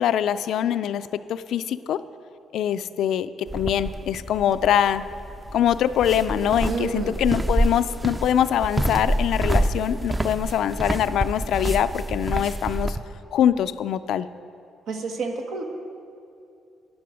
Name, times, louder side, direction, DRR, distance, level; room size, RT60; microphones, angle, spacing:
voice 1, 0.0-2.0 2.5-5.0 5.5-13.0 13.3-14.3, left 10 dB, 75° left, 13 dB, 0.4 m, -23 dB
sound 1, 3.5-13.0, right 1 dB, 15° right, 0.5 m, -27 dB
voice 2, 6.6-7.2 14.9-15.6, right 4 dB, 75° right, 3 dB, 1.3 m, -29 dB
10.5 x 10.5 x 5.0 m, 2.6 s
cardioid pair, 85°, 0 cm